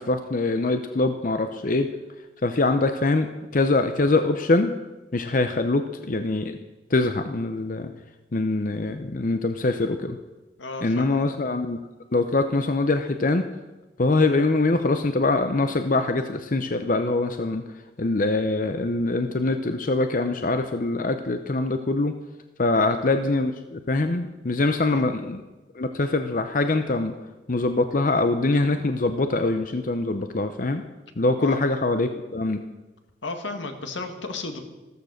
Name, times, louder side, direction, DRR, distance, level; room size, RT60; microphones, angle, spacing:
voice 1, 0.0-1.9 2.4-4.7 5.1-6.6 6.9-7.9 8.3-10.2 10.8-11.8 12.1-13.4 14.0-17.6 18.0-22.1 22.6-25.4 25.7-27.1 27.5-30.8 31.2-32.6, left 2 dB, 45° left, 8 dB, 0.7 m, -23 dB
voice 2, 10.6-11.3 22.7-22.9 24.8-25.0 31.4-31.6 33.2-34.6, left 3 dB, 80° left, 6 dB, 1.8 m, -34 dB
14.5 x 13.5 x 6.5 m, 1.1 s
head